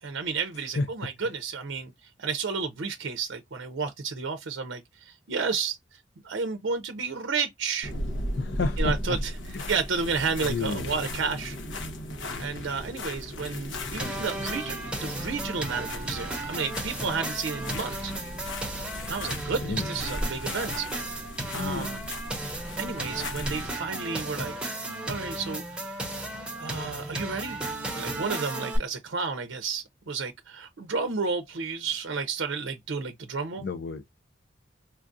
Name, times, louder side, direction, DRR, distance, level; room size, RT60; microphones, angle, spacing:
voice 1, 0.0-7.9 8.8-9.3 9.7-11.6 12.4-18.1 19.1-20.9 21.5-22.0 22.8-24.5 25.1-25.9 26.6-33.6, right 5 dB, 75° right, 0.5 m, -32 dB
voice 2, 0.5-0.9 8.4-9.2 9.5-9.7 10.4-10.9 19.6-19.9 21.5-21.9 33.6-34.0, left 3 dB, 60° left, 0.4 m, -31 dB
sound 1, 7.8-23.7, left 1 dB, 75° left, 0.9 m, -36 dB
sound 2, 14.0-28.8, right 2 dB, 5° right, 0.8 m, -35 dB
4.4 x 2.4 x 2.5 m
head